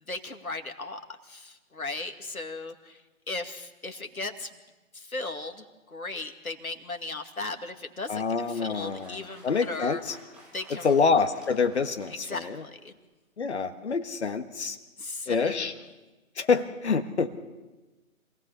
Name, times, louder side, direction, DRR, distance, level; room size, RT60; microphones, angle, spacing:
voice 1, 0.0-4.6 4.9-10.0 10.5-10.9 12.1-12.9 15.0-15.8, left 3 dB, 85° left, 5 dB, 2.4 m, -37 dB
voice 2, 8.1-10.1 10.8-12.6 13.4-14.8 15.3-15.7 16.4-17.4, left 5 dB, 55° left, 7 dB, 1.7 m, -26 dB
Applause, 8.1-13.0, right 1 dB, ahead, 0.9 m, -54 dB
26.5 x 18.0 x 7.0 m, 1.2 s
figure-of-eight pair, 145°, 41 cm